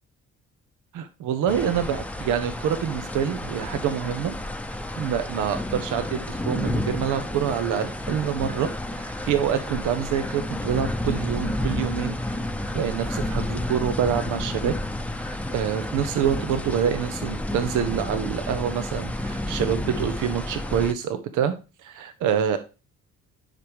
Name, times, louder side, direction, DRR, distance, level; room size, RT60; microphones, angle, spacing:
voice 1, 0.9-4.3 5.0-12.4 12.7-14.7 15.2-21.5 21.8-22.6, right 8 dB, 85° right, 9 dB, 0.8 m, -26 dB
sound 1, 1.5-20.9, left 1 dB, 5° left, 0.7 m, -31 dB
10.5 x 5.1 x 3.0 m, 0.31 s
cardioid pair, 90°, 30 cm